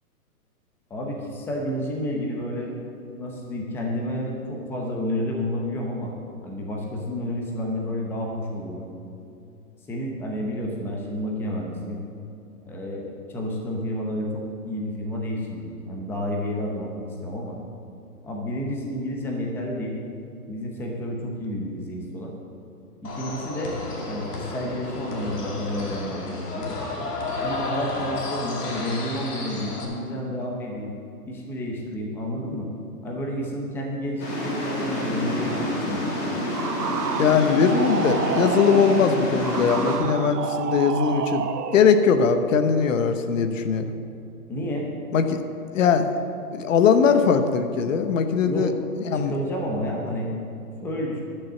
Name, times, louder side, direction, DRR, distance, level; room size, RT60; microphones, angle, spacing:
voice 1, 0.9-2.7 3.1-6.1 6.4-8.9 9.9-12.0 12.7-16.9 17.2-17.6 18.2-19.9 20.5-22.3 23.0-23.8 24.1-26.7 27.4-30.9 31.3-32.7 33.0-36.1 44.5-44.9 48.5-48.7 49.1-50.3 50.8-51.2, left 1 dB, 5° left, -1 dB, 0.7 m, -30 dB
sound 1, 23.0-29.8, left 2 dB, 80° left, 2.6 m, -32 dB
sound 2, 34.2-40.0, left 1 dB, 25° left, 2.7 m, -28 dB
sound 3, 36.5-41.9, right 7 dB, 80° right, 0.9 m, -29 dB
voice 2, 37.2-43.9 45.1-45.4 45.7-46.1 46.5-48.7 49.0-49.3, left 6 dB, 55° left, 8 dB, 1.1 m, -20 dB
11.5 x 6.7 x 7.3 m, 2.6 s
hypercardioid pair, 150°, 47 cm